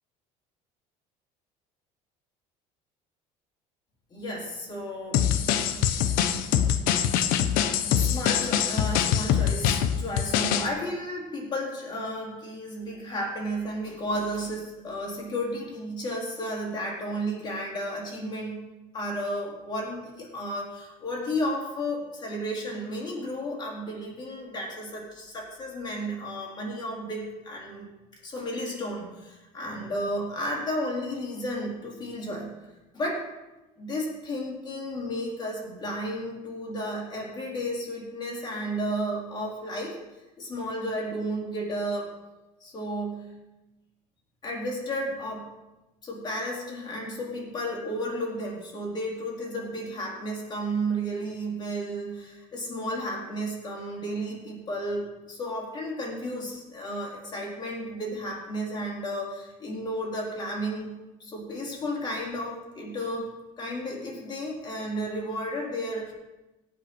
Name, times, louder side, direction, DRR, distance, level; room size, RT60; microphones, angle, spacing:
voice 1, 4.1-5.2 6.0-6.1 7.9-18.6 18.9-27.9 28.2-32.5 32.9-33.3 33.8-40.0 40.4-42.1 42.6-43.2 44.4-45.5 46.0-60.9 61.2-63.3 63.6-66.1, equal, 30° left, -3 dB, 4.1 m, -33 dB
sound 1, 5.1-10.7, left 9 dB, 75° left, 1.0 m, -24 dB
17.5 x 5.9 x 6.2 m, 1.0 s
cardioid pair, 145°, 15 cm